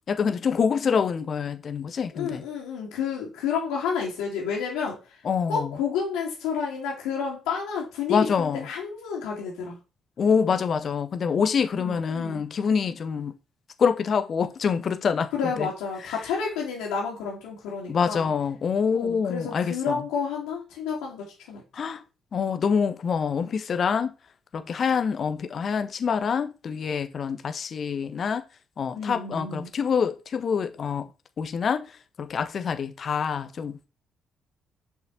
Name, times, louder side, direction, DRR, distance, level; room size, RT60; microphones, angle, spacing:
voice 1, 0.0-2.4 5.2-5.7 8.1-8.6 10.2-13.3 13.8-15.3 15.6-15.7 17.9-20.0 21.7-22.0 22.3-24.1 24.5-28.4 28.8-31.1 31.4-31.9 32.2-33.9, left 6 dB, 45° left, 1.3 m, -26 dB
voice 2, 2.1-5.2 5.5-9.8 11.8-12.4 15.3-18.3 18.9-21.6 28.9-29.7, left 6 dB, 70° left, 3.0 m, -30 dB
11.0 x 5.5 x 4.5 m
figure-of-eight pair, 40°, 0 cm